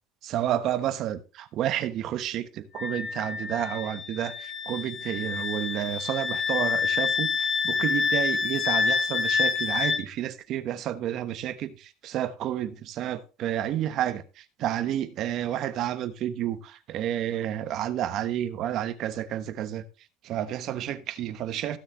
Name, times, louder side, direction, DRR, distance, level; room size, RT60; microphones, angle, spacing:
voice 1, 0.2-19.8 20.2-21.8, right 11 dB, 50° right, 1.1 m, -30 dB
Wind instrument woodwind instrument, 2.8-10.0, left 5 dB, 30° left, 0.9 m, -27 dB
16.0 x 6.5 x 3.1 m
cardioid pair, 145°, 0 cm